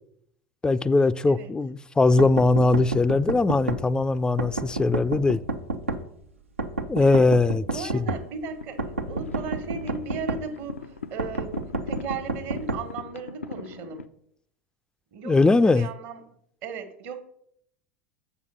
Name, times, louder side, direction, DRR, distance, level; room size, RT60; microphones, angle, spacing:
voice 1, 0.6-5.4 6.9-8.1 15.2-15.9, left 3 dB, 10° left, 0.4 m, -21 dB
sound 1, 2.2-3.8 4.4-6.0 6.6-8.2 8.8-10.4 11.2-12.8, right 3 dB, 85° right, 0.7 m, -29 dB
voice 2, 7.6-11.5 11.9-14.0 15.1-16.2 16.6-17.2, right 5 dB, 55° right, 1.4 m, -36 dB
sound 2, 8.5-14.1, left 5 dB, 85° left, 0.4 m, -41 dB
6.9 x 4.9 x 6.7 m
figure-of-eight pair, 80°, 7 cm